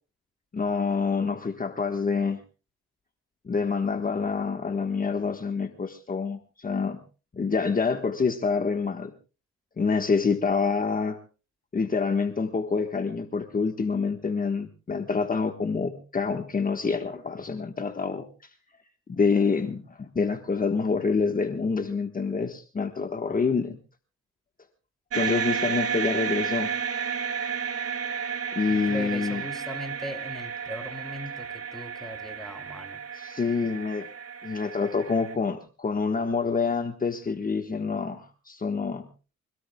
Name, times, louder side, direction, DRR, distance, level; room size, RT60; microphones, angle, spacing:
voice 1, 0.5-2.4 3.4-7.0 7.3-9.1 9.8-11.2 11.7-18.5 19.1-23.8 25.1-26.7 28.5-29.4 33.1-34.1 34.4-39.1, left 5 dB, 30° left, 5 dB, 1.5 m, -27 dB
sound 1, 25.1-35.4, right 7 dB, 50° right, 2.7 m, -32 dB
voice 2, 28.7-33.0, equal, ahead, 4 dB, 2.9 m, -39 dB
25.0 x 18.0 x 2.3 m, 0.35 s
cardioid pair, 90°, 30 cm